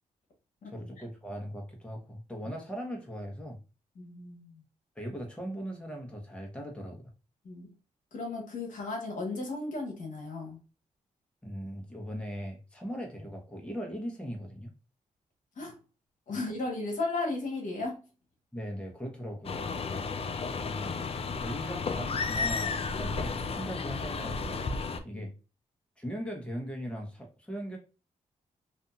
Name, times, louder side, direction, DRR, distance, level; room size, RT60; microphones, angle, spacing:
voice 1, 0.6-3.6 4.9-7.1 11.4-14.7 18.5-20.1 20.6-24.6 25.0-25.3 26.0-27.8, equal, 5° left, 1.1 m, -39 dB
voice 2, 4.0-4.6 7.4-7.7 8.1-10.6 15.6-15.7 16.3-18.0 25.1-25.3, left 3 dB, 65° left, 1.2 m, -35 dB
sound 1, 19.4-25.0, left 4 dB, 45° left, 0.4 m, -33 dB
2.6 x 2.6 x 2.4 m
supercardioid pair, 50°, 14 cm